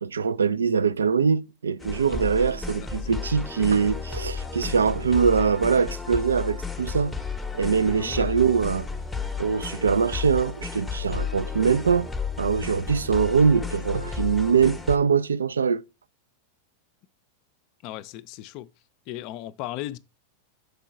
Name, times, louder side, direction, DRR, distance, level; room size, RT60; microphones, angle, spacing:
voice 1, 0.0-7.1 7.5-8.9 9.4-12.1 12.4-15.8, right 6 dB, 70° right, 0.3 m, -23 dB
sound 1, 1.8-15.0, left 5 dB, 5° left, 0.8 m, -33 dB
voice 2, 2.1-2.6 3.0-3.1 8.0-8.4 17.8-18.7 19.1-20.0, left 14 dB, 40° left, 0.4 m, -37 dB
6.7 x 4.5 x 4.4 m
figure-of-eight pair, 90°, 0 cm